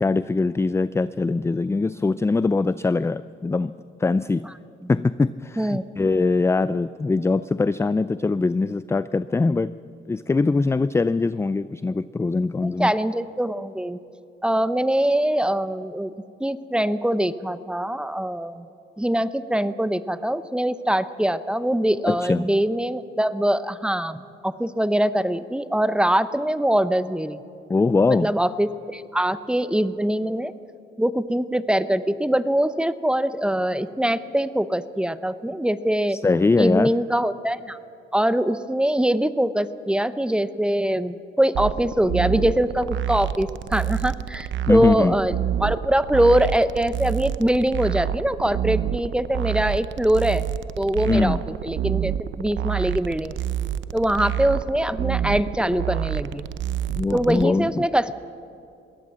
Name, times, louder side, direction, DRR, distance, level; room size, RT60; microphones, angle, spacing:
voice 1, 0.0-4.5 4.9-9.7 10.1-12.9 22.1-22.6 27.7-28.3 36.1-36.9 44.7-45.1 51.1-51.4 56.9-57.9, left 3 dB, 15° left, 15 dB, 0.4 m, -22 dB
voice 2, 12.6-14.0 14.4-16.1 16.4-18.7 19.0-27.4 28.1-30.5 31.0-36.2 36.6-37.8 38.1-45.3 45.6-50.4 50.8-51.4 51.6-53.3 53.9-56.4 57.1-58.1, right 1 dB, 5° right, 14 dB, 0.8 m, -23 dB
sound 1, 41.5-57.4, right 10 dB, 70° right, 0.8 m, -28 dB
21.5 x 16.5 x 7.6 m, 2.6 s
cardioid pair, 90°, 20 cm